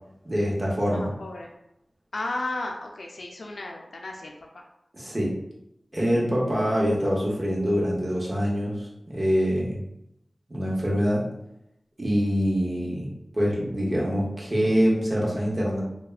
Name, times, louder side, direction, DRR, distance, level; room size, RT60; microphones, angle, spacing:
voice 1, 0.2-1.1 4.9-5.3 5.9-9.8 10.5-11.2 12.0-13.1 13.3-15.8, equal, 35° right, -4 dB, 0.8 m, -25 dB
voice 2, 0.9-1.5 2.1-4.6, left 2 dB, 80° left, 1 dB, 0.4 m, -34 dB
3.2 x 2.1 x 2.3 m, 0.83 s
wide cardioid pair, 85°, 0 cm